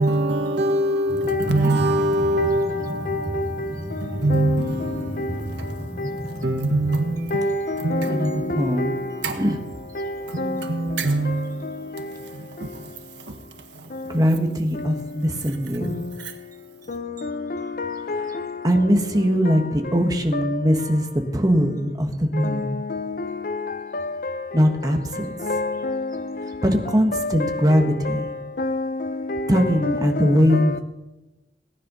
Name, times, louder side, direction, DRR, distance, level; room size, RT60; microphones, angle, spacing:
voice 1, 0.0-9.6 10.0-14.2 16.2-16.4, right 1 dB, 75° right, 1.7 m, -26 dB
sound 1, 1.1-7.1, equal, 5° right, 3.8 m, -33 dB
voice 2, 3.1-3.5 4.3-4.6 5.2-5.3 7.3-8.9 10.0-10.1 10.4-10.6 17.8-18.2 20.3-20.4 22.4-23.0 25.5-26.0 27.1-27.8 28.6-30.2 30.5-30.6, left 2 dB, 50° left, 0.8 m, -27 dB
voice 3, 8.1-8.9 9.3-9.6 14.1-16.0 18.6-22.8 24.5-25.4 26.6-28.4 29.5-30.8, equal, 20° right, 1.6 m, -21 dB
18.5 x 10.5 x 5.6 m
head